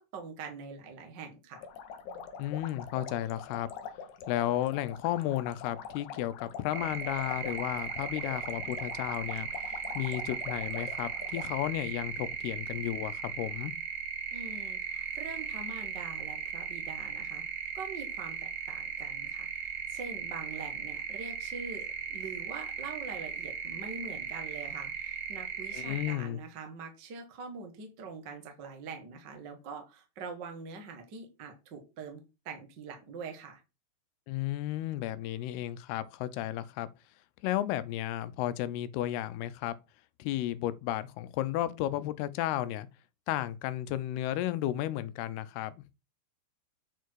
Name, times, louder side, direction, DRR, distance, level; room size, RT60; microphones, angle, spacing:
voice 1, 0.0-1.7 14.3-17.4 17.7-33.6, right 4 dB, 45° right, 1.5 m, -44 dB
sound 1, 1.5-11.5, left 6 dB, 70° left, 2.0 m, -44 dB
voice 2, 2.4-3.7 4.3-13.7 25.7-26.4 34.3-36.9 37.4-39.7 40.2-42.9 43.3-45.8, left 13 dB, 90° left, 2.7 m, -33 dB
sound 2, 6.7-26.2, right 7 dB, 65° right, 2.2 m, -37 dB
9.2 x 4.5 x 4.7 m
omnidirectional pair, 4.5 m